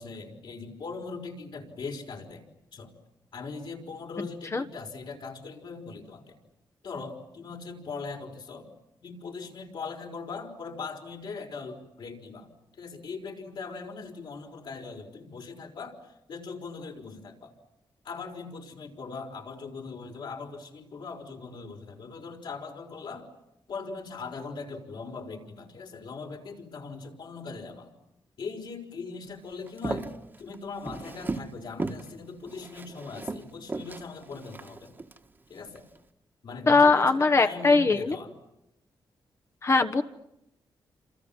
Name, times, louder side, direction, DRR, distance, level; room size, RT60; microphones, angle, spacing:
voice 1, 0.0-2.4 2.7-2.9 3.3-6.4 6.8-8.7 9.0-12.5 12.8-17.5 18.0-23.3 23.7-27.9 28.4-30.1 30.4-35.0 35.5-35.9 36.4-38.3, left 4 dB, 65° left, 2 dB, 5.3 m, -40 dB
Walk footsteps, 29.7-31.5 31.8-32.1 32.5-35.2 35.7-36.0, right 3 dB, 25° right, 1.6 m, -36 dB
voice 2, 36.7-38.2 39.6-40.0, left 3 dB, 35° left, 8 dB, 1.3 m, -21 dB
28.5 x 27.5 x 7.4 m, 0.87 s
cardioid pair, 115°, 8 cm